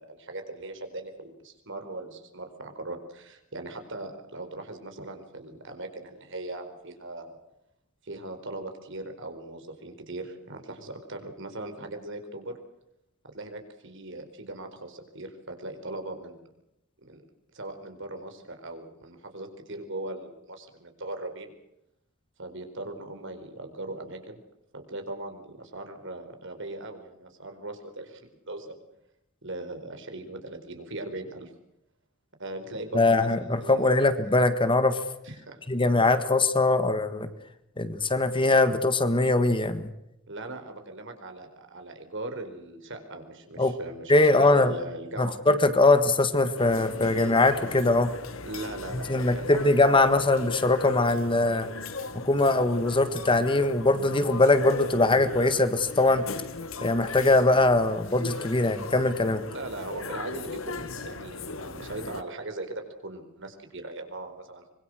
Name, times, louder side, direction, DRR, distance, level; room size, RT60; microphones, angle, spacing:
voice 1, 0.0-7.4 8.0-12.6 13.2-16.4 17.0-17.2 17.5-21.5 22.4-24.4 24.7-28.8 29.4-31.5 32.4-34.2 35.2-35.6 40.3-45.4 48.4-50.2 59.5-64.6, right 2 dB, 60° right, 6 dB, 4.5 m, -39 dB
voice 2, 32.9-35.0 35.7-37.3 37.8-39.9 43.6-43.7 44.1-44.7 45.2-48.1 48.9-51.7 52.2-56.3 56.8-59.4, left 2 dB, 25° left, 11 dB, 1.6 m, -22 dB
sound 1, 46.5-62.2, left 3 dB, 70° left, 1.8 m, -38 dB
25.0 x 23.0 x 6.3 m, 0.84 s
head